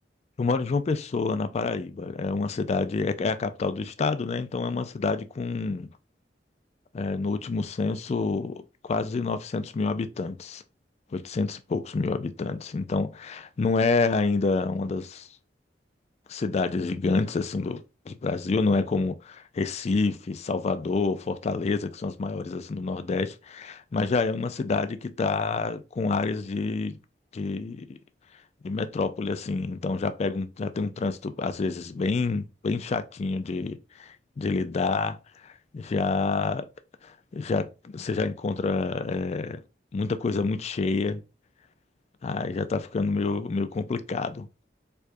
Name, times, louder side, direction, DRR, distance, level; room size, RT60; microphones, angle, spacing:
voice 1, 0.4-5.9 6.9-10.6 11.1-15.3 16.3-27.0 27.3-28.0 28.6-35.2 35.4-36.6 37.0-39.6 39.9-41.2 42.2-44.5, left 4 dB, 40° left, 0.3 m, -28 dB
4.6 x 2.4 x 2.5 m
head